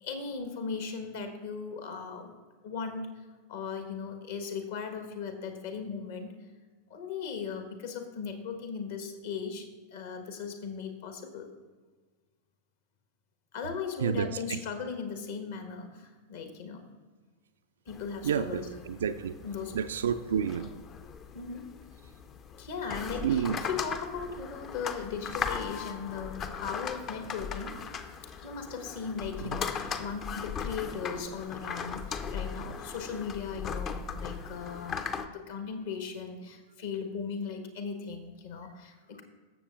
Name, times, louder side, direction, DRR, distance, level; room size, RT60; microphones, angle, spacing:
voice 1, 0.0-2.3 2.6-3.1 3.5-6.4 6.9-11.5 13.5-16.9 17.9-18.7 19.4-19.8 21.3-21.7 22.6-27.8 28.4-39.2, left 6 dB, 55° left, 6 dB, 1.3 m, -38 dB
voice 2, 14.0-14.6 18.2-19.3 19.7-20.7 23.2-23.6 29.4-29.5, right 8 dB, 65° right, 11 dB, 0.3 m, -30 dB
sound 1, 17.9-35.3, left 6 dB, 30° left, 0.6 m, -38 dB
16.5 x 7.1 x 2.4 m, 1.4 s
figure-of-eight pair, 90°, 0 cm